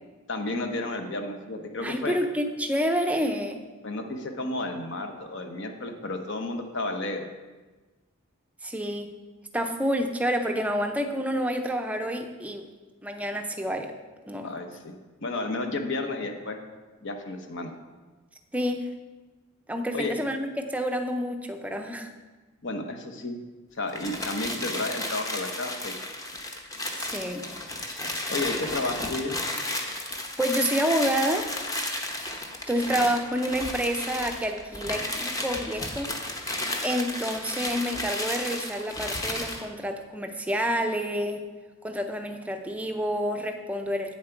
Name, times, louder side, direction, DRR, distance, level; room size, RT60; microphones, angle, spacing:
voice 1, 0.3-2.2 3.8-7.3 14.4-16.6 17.0-17.7 19.9-20.1 22.6-23.4 23.7-25.9 28.3-29.4, left 2 dB, 55° left, 5 dB, 0.9 m, -32 dB
voice 2, 1.8-3.6 8.6-9.2 9.5-12.7 13.0-13.9 14.3-14.5 18.5-18.9 19.7-22.1 27.0-27.5 30.0-31.5 32.7-36.1 36.8-41.4 41.8-44.1, equal, 5° right, 5 dB, 0.5 m, -28 dB
sound 1, 23.9-39.6, left 1 dB, 15° left, 0.8 m, -33 dB
8.8 x 7.4 x 4.5 m, 1.3 s
head